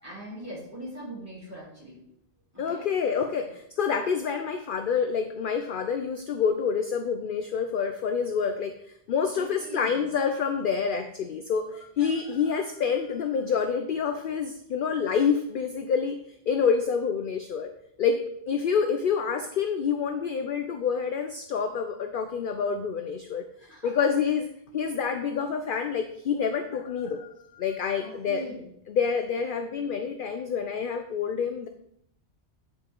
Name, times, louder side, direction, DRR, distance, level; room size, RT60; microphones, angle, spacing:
voice 1, 0.0-2.0 2.5-2.9 3.4-3.5 9.3-10.1 23.5-23.9 28.0-28.7, right 1 dB, 15° right, -8 dB, 3.4 m, -41 dB
voice 2, 2.6-8.7 9.1-16.2 16.5-17.7 18.0-18.2 18.5-23.4 23.8-24.5 24.7-28.4 28.9-31.7, left 6 dB, 55° left, 6 dB, 0.7 m, -27 dB
8.7 x 5.1 x 3.7 m, 0.73 s
omnidirectional pair, 1.2 m